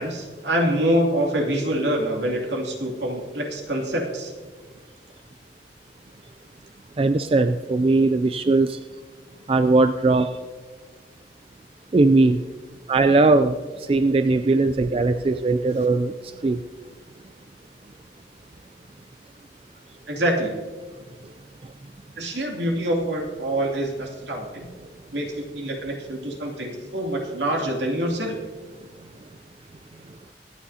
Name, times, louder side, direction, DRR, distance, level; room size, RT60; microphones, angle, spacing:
voice 1, 0.0-4.3 20.1-20.6 22.2-24.7 25.1-28.4, right 1 dB, 80° right, 0 dB, 2.6 m, -25 dB
voice 2, 7.0-8.8 9.5-10.4 11.9-12.4 12.9-16.6, right 3 dB, 30° right, 9 dB, 0.3 m, -19 dB
24.5 x 9.3 x 2.8 m, 1.4 s
head